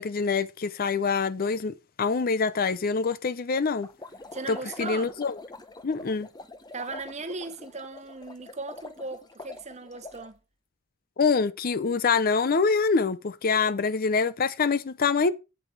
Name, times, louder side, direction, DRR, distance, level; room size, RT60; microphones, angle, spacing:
voice 1, 0.0-3.9 4.5-5.4 5.8-6.3 11.2-15.3, left 5 dB, 40° left, 0.5 m, -25 dB
sound 1, 3.8-10.3, left 2 dB, 20° left, 0.8 m, -45 dB
voice 2, 4.3-5.1 6.7-10.4, right 3 dB, 30° right, 1.1 m, -37 dB
8.5 x 8.4 x 4.6 m
head